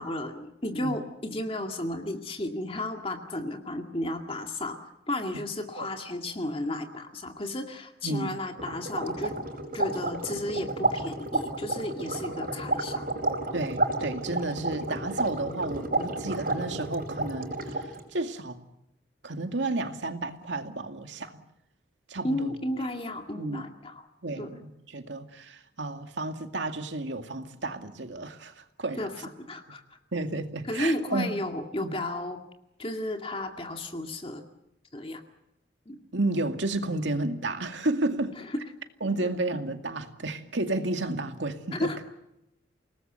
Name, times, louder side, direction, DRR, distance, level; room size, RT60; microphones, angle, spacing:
voice 1, 0.0-9.3 9.7-13.1 22.2-24.1 24.4-24.6 29.0-29.8 30.7-32.4 32.8-34.4 34.9-35.2 35.9-36.0 39.2-39.3 41.7-42.0, left 1 dB, 30° left, 4 dB, 2.2 m, -33 dB
voice 2, 8.0-8.4 13.5-18.6 19.2-21.3 22.1-22.6 23.4-23.6 24.2-29.1 30.1-31.4 31.8-32.0 36.1-38.3 39.0-41.9, right 2 dB, 80° right, 6 dB, 2.2 m, -32 dB
sound 1, 8.6-18.0, right 2 dB, 50° right, 5.1 m, -31 dB
29.5 x 19.5 x 8.0 m, 0.89 s
head